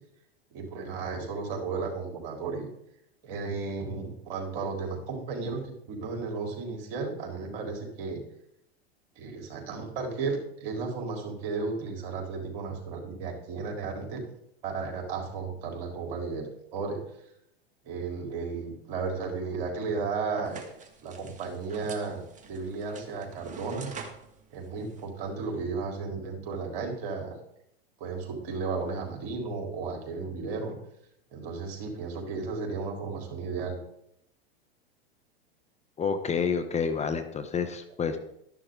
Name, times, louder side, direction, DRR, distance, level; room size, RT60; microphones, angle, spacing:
voice 1, 0.5-2.7 3.2-8.2 9.2-14.2 14.6-16.5 16.7-17.0 17.8-20.6 21.0-23.9 24.5-27.4 28.0-30.7 31.3-33.8, right 4 dB, 60° right, 1 dB, 4.3 m, -34 dB
sound 1, 20.4-25.7, right 5 dB, 25° right, 2.1 m, -47 dB
voice 2, 36.0-38.2, left 6 dB, 20° left, 8 dB, 1.2 m, -29 dB
13.0 x 11.0 x 4.0 m, 0.76 s
hypercardioid pair, 110°, 30 cm